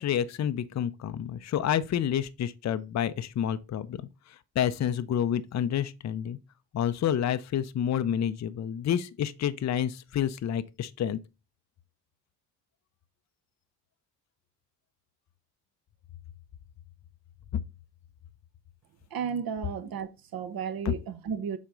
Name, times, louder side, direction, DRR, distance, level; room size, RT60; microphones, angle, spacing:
voice 1, 0.0-4.0 4.6-6.4 6.7-11.2 17.5-17.6 20.8-20.9, left 9 dB, 35° left, 0.6 m, -29 dB
voice 2, 19.1-21.6, right 7 dB, 45° right, 1.0 m, -33 dB
7.2 x 4.4 x 3.8 m
hypercardioid pair, 45°, 48 cm